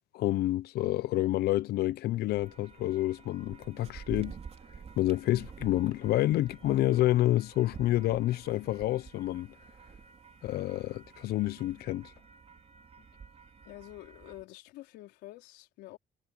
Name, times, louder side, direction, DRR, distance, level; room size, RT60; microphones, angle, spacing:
voice 1, 0.1-4.4 5.0-9.5 10.4-12.1, left 15 dB, 70° left, 0.6 m, -28 dB
sound 1, 2.3-14.4, right 6 dB, 35° right, 3.4 m, -49 dB
voice 2, 13.6-16.0, left 17 dB, 90° left, 4.2 m, -48 dB
cardioid pair, 110°, 17 cm